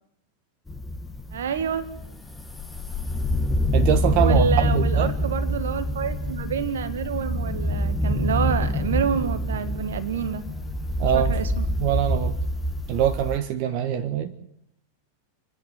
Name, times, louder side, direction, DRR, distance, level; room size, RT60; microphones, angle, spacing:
sound 1, 0.7-13.4, equal, 5° left, 1.5 m, -26 dB
voice 1, 1.3-1.9 4.2-10.4 11.1-11.7, right 7 dB, 60° right, 10 dB, 1.6 m, -28 dB
voice 2, 3.7-5.1 11.0-11.4 11.8-12.4 12.9-14.3, right 10 dB, 45° right, 8 dB, 1.4 m, -23 dB
27.0 x 10.5 x 9.9 m, 0.77 s
figure-of-eight pair, 90°, 0 cm